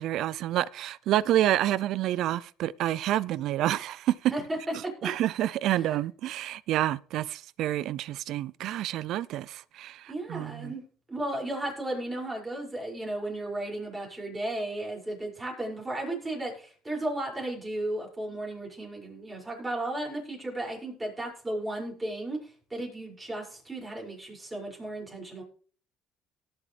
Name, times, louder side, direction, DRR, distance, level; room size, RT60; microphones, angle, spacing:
voice 1, 0.0-4.3 5.0-10.7, right 13 dB, 70° right, 0.4 m, -28 dB
voice 2, 10.1-25.4, right 1 dB, 20° right, 5.9 m, -34 dB
18.5 x 7.0 x 3.3 m
supercardioid pair, 85°, 0 cm